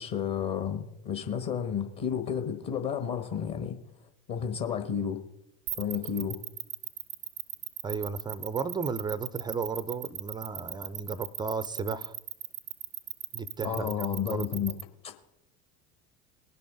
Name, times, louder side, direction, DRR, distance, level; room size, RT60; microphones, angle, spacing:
voice 1, 0.0-3.8 4.3-5.2 5.8-6.4 13.6-14.7 15.0-15.1, left 8 dB, 40° left, 6 dB, 1.5 m, -31 dB
sound 1, 5.7-14.8, right 12 dB, 90° right, 0.6 m, -37 dB
voice 2, 7.8-12.1 13.3-13.9 14.3-14.5, right 5 dB, 10° right, 15 dB, 0.3 m, -34 dB
19.5 x 6.8 x 3.8 m, 0.80 s
figure-of-eight pair, 70°, 49 cm